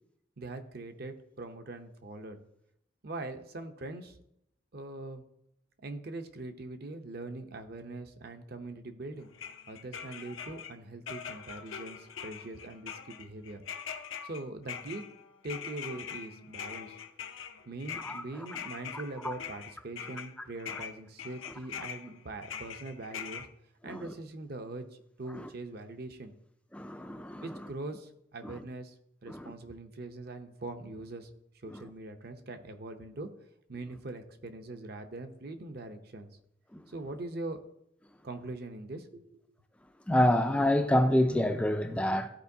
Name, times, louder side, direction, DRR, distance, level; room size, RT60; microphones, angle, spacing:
voice 1, 0.4-2.4 3.0-4.2 4.7-5.2 5.8-9.3 9.7-13.6 14.2-15.0 15.4-17.0 17.7-23.5 23.8-26.3 27.4-28.9 29.2-31.3 31.6-33.3 33.7-36.4 36.9-37.6 38.2-39.4, right 2 dB, 50° right, 0.7 m, -42 dB
sound 1, 9.3-10.7 11.1-20.3 20.6-23.5, left 7 dB, 85° left, 0.6 m, -42 dB
voice 2, 26.7-27.4 29.3-29.5 36.7-36.8 40.1-42.3, left 1 dB, 5° left, 0.3 m, -27 dB
13.5 x 4.5 x 2.7 m
head